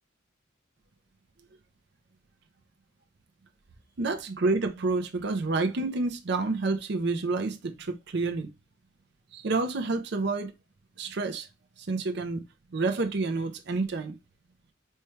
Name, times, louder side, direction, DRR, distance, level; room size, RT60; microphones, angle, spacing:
voice 1, 4.0-8.5 9.3-10.5 11.0-11.5 11.8-12.4 12.7-14.2, right 3 dB, 60° right, 0.6 m, -29 dB
4.3 x 2.3 x 3.1 m
head